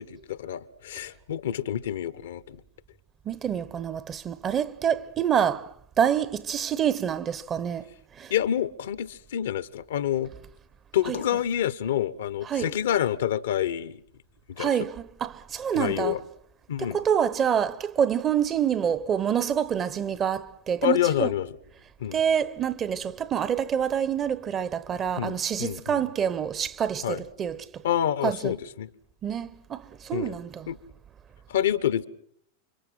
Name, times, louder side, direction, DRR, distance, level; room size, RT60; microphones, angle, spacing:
voice 1, 0.0-2.6 8.3-10.3 10.9-14.0 14.5-14.9 15.7-16.2 16.7-17.0 20.8-21.6 22.0-22.2 25.2-26.1 27.0-27.2 27.8-28.9 30.1-30.4 30.7-30.8 31.5-32.0, left 10 dB, 60° left, 1.0 m, -28 dB
voice 2, 3.3-5.7 6.0-7.9 8.2-8.3 11.1-11.2 12.5-12.7 14.6-16.2 16.8-21.3 22.1-27.6 28.2-28.5 29.2-30.7, right 8 dB, 25° right, 1.0 m, -27 dB
29.5 x 25.5 x 6.0 m
figure-of-eight pair, 90°, 0 cm